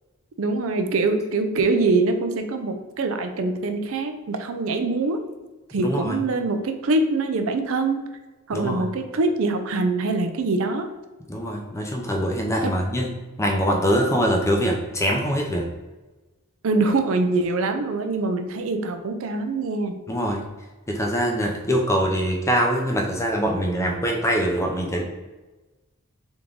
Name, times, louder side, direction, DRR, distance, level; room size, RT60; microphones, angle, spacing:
voice 1, 0.4-5.2 5.7-8.0 8.5-10.9 12.6-12.8 16.6-19.9, right 3 dB, 65° right, 6 dB, 0.5 m, -24 dB
voice 2, 5.8-6.2 8.5-8.9 11.3-15.7 20.1-20.4 20.9-25.0, equal, 15° left, 0 dB, 0.5 m, -23 dB
3.5 x 3.1 x 3.8 m, 1.2 s
head